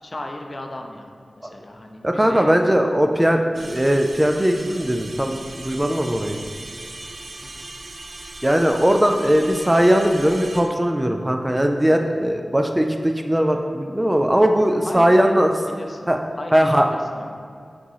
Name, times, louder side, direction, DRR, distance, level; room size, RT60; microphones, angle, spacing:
voice 1, 0.0-2.6 7.4-7.7 14.9-15.4 15.7-16.1 16.4-17.4, left 1 dB, 40° left, 3 dB, 0.5 m, -35 dB
voice 2, 2.0-6.4 8.4-15.5 16.1-16.2 16.5-16.9, equal, 15° right, 4 dB, 0.3 m, -19 dB
sound 1, 3.5-10.6, right 2 dB, 75° right, 0.6 m, -38 dB
6.1 x 3.0 x 5.5 m, 2.3 s
wide cardioid pair, 90°, 0 cm